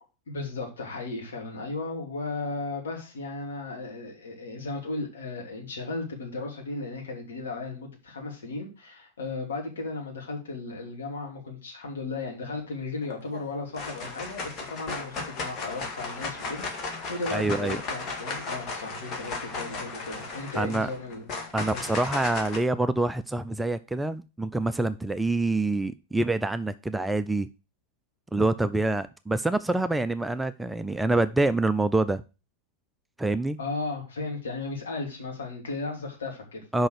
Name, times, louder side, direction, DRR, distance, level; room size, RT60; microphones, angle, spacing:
voice 1, 0.3-21.3 21.7-21.8 33.6-36.7, left 3 dB, 65° left, 2.9 m, -35 dB
sound 1, 13.0-13.4 13.7-22.6, left 3 dB, 30° left, 2.0 m, -35 dB
voice 2, 17.3-17.8 20.6-20.9 21.5-27.5 28.3-32.2 33.2-33.6 36.7-36.9, right 2 dB, 5° right, 0.4 m, -26 dB
6.3 x 5.4 x 6.4 m
figure-of-eight pair, 90°, 0 cm